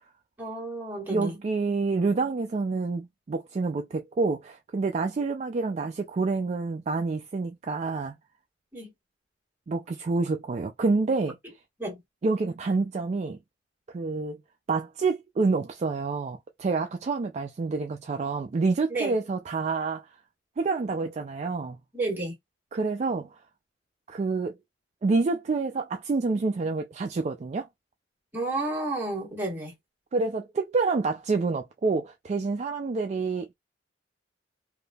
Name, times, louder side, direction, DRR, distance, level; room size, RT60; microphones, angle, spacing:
voice 1, 0.4-1.3 8.7-8.9 11.8-12.0 18.9-19.1 21.9-22.3 28.3-29.7, right 2 dB, 10° right, 1.4 m, -31 dB
voice 2, 1.1-8.1 9.7-11.4 12.2-13.4 13.9-14.4 14.7-20.1 20.6-21.8 22.7-23.3 24.1-24.5 25.0-27.7 30.1-33.5, right 3 dB, 35° right, 0.3 m, -28 dB
3.4 x 2.6 x 2.3 m
head